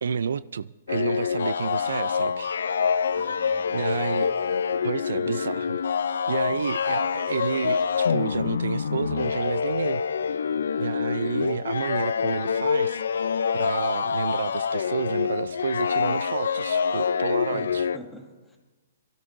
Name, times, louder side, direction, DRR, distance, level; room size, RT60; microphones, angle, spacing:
voice 1, 0.0-2.5 3.7-4.3 4.8-5.8 6.3-10.0 10.8-17.9, right 6 dB, 80° right, 0.4 m, -30 dB
sound 1, 0.9-18.0, left 6 dB, 80° left, 0.5 m, -26 dB
voice 2, 3.1-4.0 5.1-5.4 17.5-18.6, left 1 dB, 5° left, 2.0 m, -46 dB
27.5 x 13.0 x 2.6 m
hypercardioid pair, 160°, 0 cm